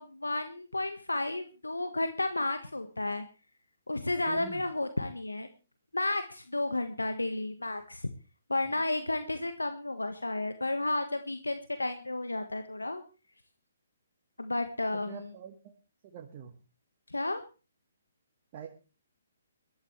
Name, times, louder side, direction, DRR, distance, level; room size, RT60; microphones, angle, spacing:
voice 1, 0.0-3.2 3.9-5.5 5.9-8.1 8.5-13.0 14.4-15.3 17.1-17.4, left 2 dB, 90° left, 8 dB, 1.5 m, -32 dB
voice 2, 4.3-4.6 8.7-8.8 14.9-15.6 16.0-16.6 18.5-18.7, right 9 dB, 35° right, 1 dB, 1.9 m, -44 dB
22.5 x 13.0 x 3.3 m, 0.33 s
figure-of-eight pair, 135°, 0 cm